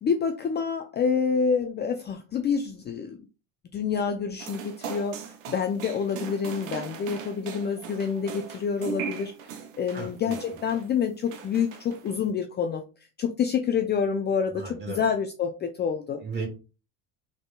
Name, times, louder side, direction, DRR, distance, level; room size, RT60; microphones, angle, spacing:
voice 1, 0.0-3.2 3.7-9.3 9.8-12.8 13.2-16.2, left 6 dB, 25° left, 5 dB, 0.4 m, -27 dB
sound 1, 4.4-10.9 11.3-12.2, right 7 dB, 80° right, 0.7 m, -39 dB
voice 2, 9.9-10.6 14.5-15.0 16.2-16.5, right 4 dB, 25° right, 2 dB, 1.9 m, -35 dB
3.9 x 3.6 x 2.2 m, 0.32 s
hypercardioid pair, 85°, 38 cm